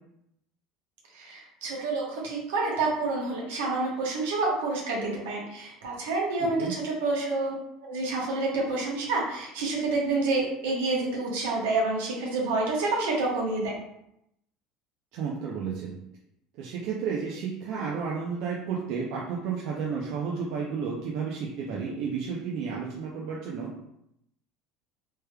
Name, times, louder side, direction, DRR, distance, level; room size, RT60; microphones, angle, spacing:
voice 1, 1.1-7.5 7.8-13.7, right 3 dB, 90° right, -2 dB, 1.0 m, -28 dB
voice 2, 6.4-6.7 15.1-16.0 16.6-23.7, right 6 dB, 65° right, -3 dB, 0.6 m, -32 dB
3.3 x 3.2 x 2.3 m, 0.79 s
supercardioid pair, 105°, 0 cm